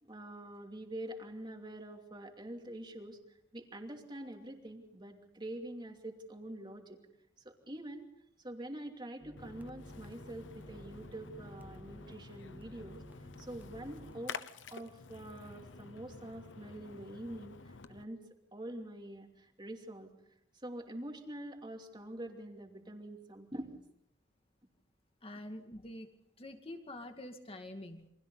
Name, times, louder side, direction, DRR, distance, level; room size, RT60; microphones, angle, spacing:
voice 1, 0.0-3.2 3.5-7.0 7.4-8.1 8.4-13.0 13.4-14.4 14.7-18.2 18.5-20.1 20.6-23.8, right 1 dB, 25° right, 3 dB, 2.8 m, -45 dB
sound 1, 9.2-14.2, equal, 10° right, 0.8 m, -54 dB
Splash splatter, 9.4-18.0, left 4 dB, 75° left, 1.0 m, -50 dB
voice 2, 25.2-26.1 26.4-28.1, left 1 dB, 30° left, 6 dB, 2.3 m, -46 dB
29.0 x 24.0 x 4.0 m, 0.81 s
head